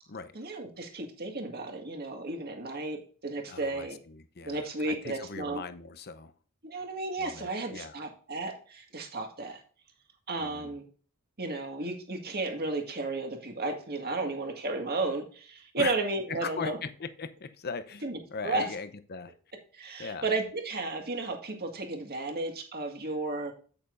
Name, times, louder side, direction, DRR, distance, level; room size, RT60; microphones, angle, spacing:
voice 1, 0.4-4.0 4.4-5.6 6.6-9.6 10.3-10.9 11.4-16.8 18.0-18.7 19.7-23.5, right 2 dB, 45° right, 1.9 m, -33 dB
voice 2, 3.5-6.3 7.2-8.0 10.4-10.8 15.8-15.9 16.3-19.3 20.0-20.3, left 5 dB, 45° left, 0.7 m, -39 dB
9.1 x 8.8 x 2.6 m
head